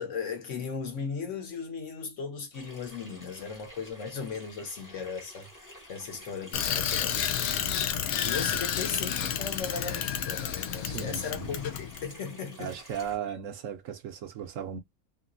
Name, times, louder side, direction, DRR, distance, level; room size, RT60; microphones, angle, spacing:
voice 1, 0.0-7.6 8.2-12.8, left 5 dB, 60° left, 1.1 m, -37 dB
Water tap faucet / Sink (filling or washing), 2.5-13.2, equal, 15° left, 0.7 m, -50 dB
Bicycle, 6.5-12.0, left 9 dB, 80° left, 1.0 m, -30 dB
voice 2, 10.8-11.5 12.6-14.8, right 8 dB, 70° right, 0.9 m, -36 dB
2.9 x 2.8 x 2.5 m
omnidirectional pair, 1.5 m